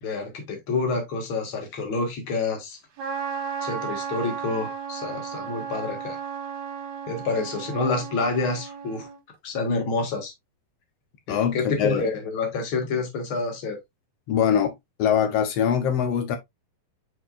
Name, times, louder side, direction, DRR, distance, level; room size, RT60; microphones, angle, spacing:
voice 1, 0.0-2.8 3.6-6.2 7.1-9.1 9.4-10.3 11.3-13.8, left 3 dB, 45° left, 2.1 m, -28 dB
Trumpet, 3.0-9.2, right 7 dB, 55° right, 3.2 m, -34 dB
voice 2, 11.3-12.1 14.3-14.7 15.0-16.4, left 8 dB, 80° left, 1.4 m, -23 dB
8.9 x 4.6 x 2.4 m
omnidirectional pair, 4.1 m